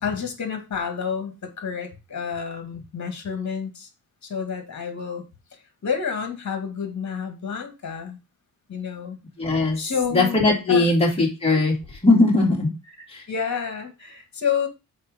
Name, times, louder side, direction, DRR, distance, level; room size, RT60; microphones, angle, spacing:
voice 1, 0.0-3.9 4.2-5.2 5.8-8.2 8.7-9.2 9.8-10.4 10.7-10.9 11.2-11.3 11.5-11.6 12.9-14.7, left 6 dB, 50° left, 6 dB, 2.1 m, -29 dB
voice 2, 9.4-9.8 10.1-11.7 12.0-12.7 13.1-13.2, left 2 dB, 15° left, -2 dB, 2.5 m, -19 dB
6.5 x 4.6 x 5.1 m, 0.27 s
wide cardioid pair, 140°, 36 cm